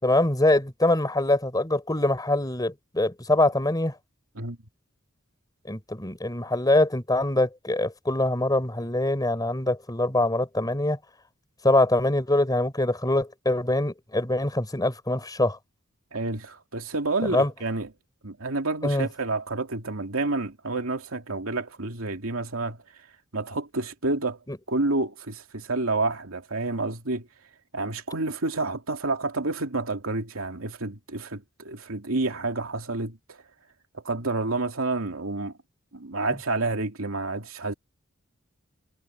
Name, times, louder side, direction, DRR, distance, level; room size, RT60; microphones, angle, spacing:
voice 1, 0.0-3.9 5.7-11.0 11.6-15.6 17.3-17.5 18.8-19.1 24.5-24.6, left 1 dB, 20° left, 4.1 m, -24 dB
voice 2, 16.1-17.9 18.2-22.8 23.3-24.4 24.7-27.3 27.7-33.4 33.9-35.5 35.9-37.7, right 3 dB, 85° right, 2.6 m, -29 dB
head